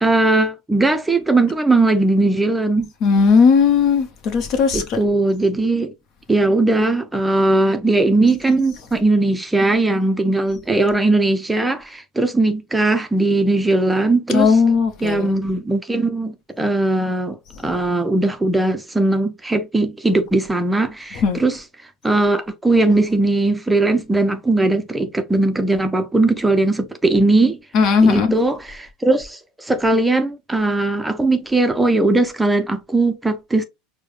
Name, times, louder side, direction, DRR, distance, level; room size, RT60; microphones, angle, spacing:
voice 1, 0.0-2.9 4.7-5.9 6.3-14.6 15.0-17.4 17.6-21.6 22.0-27.6 28.0-33.6, right 2 dB, 10° right, 0.5 m, -19 dB
voice 2, 3.0-5.0 14.3-15.3 21.2-21.4 27.7-28.3, left 5 dB, 50° left, 0.9 m, -16 dB
4.6 x 2.1 x 3.2 m
hypercardioid pair, 100°, 0 cm